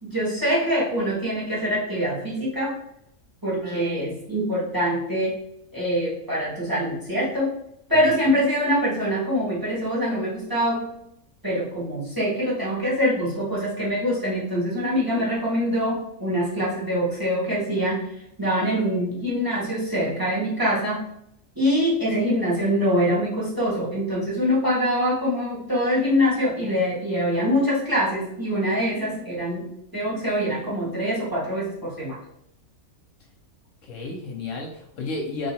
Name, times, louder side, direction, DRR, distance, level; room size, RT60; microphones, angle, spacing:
voice 1, 0.0-2.8 3.4-5.4 5.7-7.5 7.9-10.9 11.4-18.1 18.4-21.1 21.5-32.2, equal, 15° right, -5 dB, 1.2 m, -24 dB
voice 2, 8.1-8.4 33.8-35.5, left 3 dB, 65° left, 1 dB, 1.0 m, -32 dB
3.3 x 2.8 x 4.2 m, 0.77 s
omnidirectional pair, 1.5 m